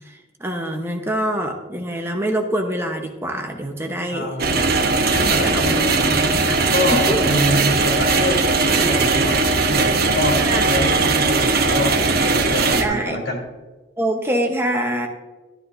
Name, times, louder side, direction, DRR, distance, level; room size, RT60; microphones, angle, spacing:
voice 1, 0.0-4.3 5.0-6.6 6.9-7.4 10.4-10.7 12.8-13.2 14.0-15.1, right 1 dB, 15° right, 3 dB, 0.9 m, -25 dB
voice 2, 4.1-4.6 5.2-6.2 6.7-9.4 9.7-10.4 10.7-11.9 12.2-13.4, left 1 dB, 75° left, -1 dB, 3.7 m, -25 dB
sound 1, 4.4-12.8, right 3 dB, 60° right, 0.9 m, -19 dB
12.0 x 10.5 x 2.6 m, 1.2 s
head